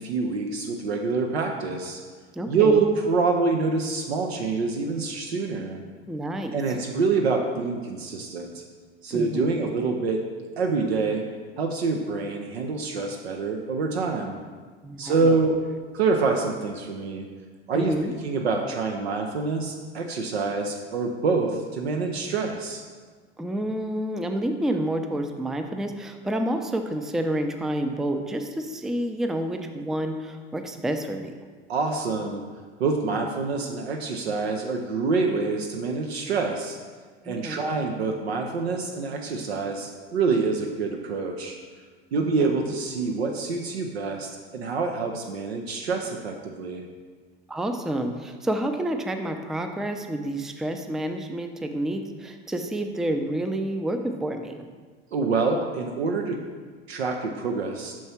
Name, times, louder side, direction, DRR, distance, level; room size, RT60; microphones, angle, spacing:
voice 1, 0.0-2.0 2.5-5.8 6.5-8.6 9.0-10.2 10.6-11.2 11.6-14.4 15.0-15.6 15.9-17.3 17.7-17.9 18.2-22.8 31.7-32.4 32.8-36.8 37.2-41.6 42.1-46.8 55.1-56.4 56.9-57.9, right 4 dB, 85° right, 2 dB, 0.6 m, -26 dB
voice 2, 2.3-2.8 6.1-6.6 9.1-9.5 14.8-15.3 17.7-18.1 23.4-31.3 37.2-37.6 42.2-42.5 47.5-54.6, right 1 dB, ahead, 6 dB, 0.4 m, -29 dB
5.7 x 4.6 x 4.4 m, 1.5 s
hypercardioid pair, 80°, 31 cm